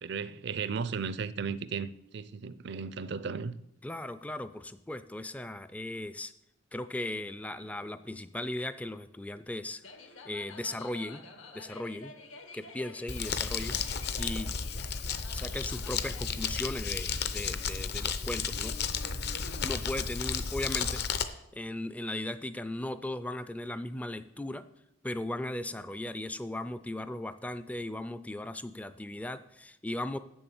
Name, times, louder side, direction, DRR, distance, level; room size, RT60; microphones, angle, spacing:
voice 1, 0.0-1.9 2.1-3.6, right 5 dB, 55° right, 0.4 m, -35 dB
voice 2, 3.8-6.3 6.7-9.8 10.2-11.2 11.5-12.1 12.5-14.5 15.3-18.8 19.6-24.6 25.0-30.2, left 1 dB, 5° left, 0.3 m, -37 dB
sound 1, 9.8-19.7, left 3 dB, 80° left, 1.3 m, -50 dB
Crumpling crinkling, 13.1-21.2, left 6 dB, 55° left, 0.6 m, -33 dB
8.1 x 7.0 x 7.1 m
head